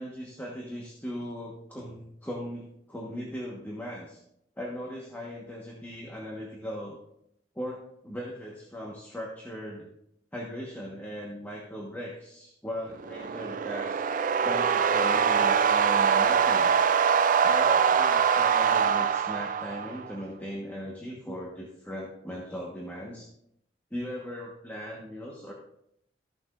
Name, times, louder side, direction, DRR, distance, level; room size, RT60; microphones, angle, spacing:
voice 1, 0.0-4.2 4.6-7.0 7.5-9.9 10.3-14.0 14.4-16.9 17.4-23.3 23.9-25.5, equal, 10° left, -3 dB, 1.2 m, -38 dB
sound 1, 13.0-20.1, right 7 dB, 45° right, 0.4 m, -23 dB
14.0 x 7.1 x 2.5 m, 0.75 s
head